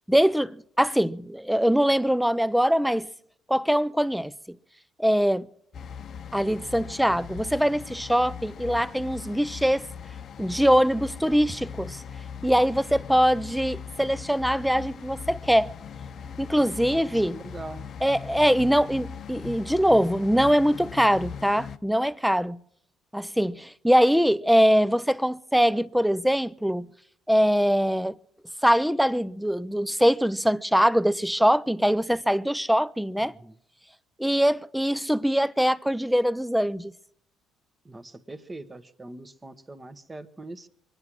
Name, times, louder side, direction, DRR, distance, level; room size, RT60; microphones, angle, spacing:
voice 1, 0.1-3.1 3.5-4.6 5.0-5.5 6.3-9.8 10.4-12.0 12.4-15.7 16.4-17.4 18.0-22.6 23.1-26.9 27.3-28.1 28.6-33.3 34.2-36.9, equal, ahead, 0.5 m, -23 dB
sound 1, 5.7-21.8, left 7 dB, 55° left, 0.8 m, -40 dB
voice 2, 16.8-17.9 33.2-33.5 37.8-40.7, right 2 dB, 20° right, 1.3 m, -42 dB
23.5 x 10.0 x 6.2 m
supercardioid pair, 80°, 0 cm